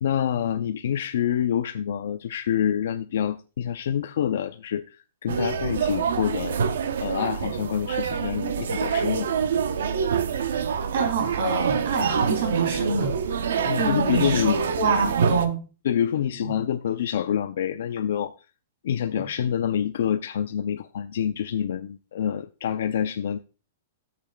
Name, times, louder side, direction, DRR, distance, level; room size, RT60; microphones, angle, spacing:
voice 1, 0.0-6.6 7.0-9.3 13.7-14.6 15.8-18.3 18.8-23.4, left 9 dB, 60° left, 0.5 m, -27 dB
sound 1, 5.3-15.5, right 6 dB, 90° right, 0.8 m, -26 dB
voice 2, 10.9-15.6 16.2-16.5 19.2-19.3, right 4 dB, 55° right, 2.8 m, -26 dB
17.5 x 6.7 x 2.3 m
supercardioid pair, 180°, 0 cm